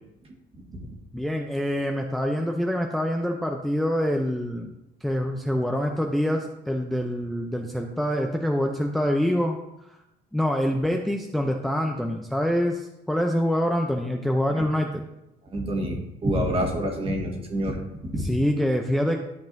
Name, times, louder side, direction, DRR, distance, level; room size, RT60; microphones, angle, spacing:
voice 1, 1.1-10.0 10.3-15.0 18.1-19.2, equal, ahead, 2 dB, 0.5 m, -26 dB
voice 2, 15.5-18.4, equal, 35° right, 2 dB, 1.6 m, -27 dB
11.5 x 5.4 x 2.6 m, 0.89 s
cardioid pair, 110°, 17 cm